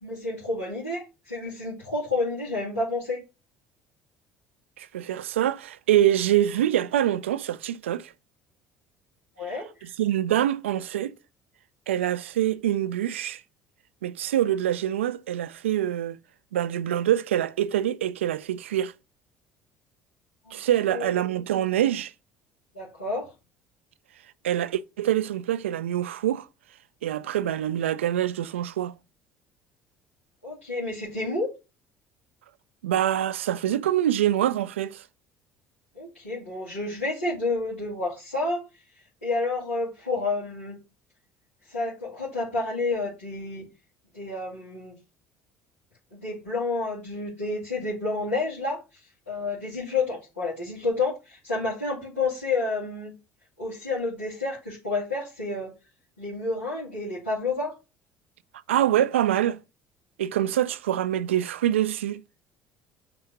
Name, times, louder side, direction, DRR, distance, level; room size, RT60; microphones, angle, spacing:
voice 1, 0.0-3.2 9.4-9.9 20.5-20.6 20.9-21.1 22.7-23.3 30.4-31.5 35.9-38.6 39.2-40.8 41.7-43.7 44.1-44.9 46.1-48.8 49.3-53.1 53.6-55.7 56.2-57.7, left 3 dB, 85° left, 2.6 m, -30 dB
voice 2, 4.8-8.1 10.0-11.1 11.9-13.4 14.0-16.2 16.5-18.9 20.5-22.1 24.4-26.5 27.0-29.0 32.8-35.0 58.7-59.6 60.2-62.2, right 12 dB, 75° right, 0.4 m, -25 dB
5.9 x 3.7 x 5.6 m
figure-of-eight pair, 60°, 7 cm